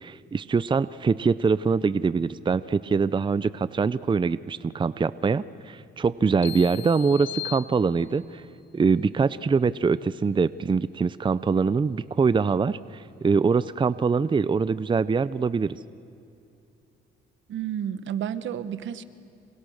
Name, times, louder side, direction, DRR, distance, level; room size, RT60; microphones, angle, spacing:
voice 1, 0.0-8.4 8.7-15.8, right 5 dB, 25° right, 16 dB, 0.6 m, -24 dB
sound 1, 6.4-8.4, left 13 dB, 65° left, 2.7 m, -38 dB
voice 2, 17.5-19.1, right 9 dB, 70° right, 13 dB, 1.3 m, -31 dB
30.0 x 27.0 x 6.5 m, 2.7 s
cardioid pair, 90°, 20 cm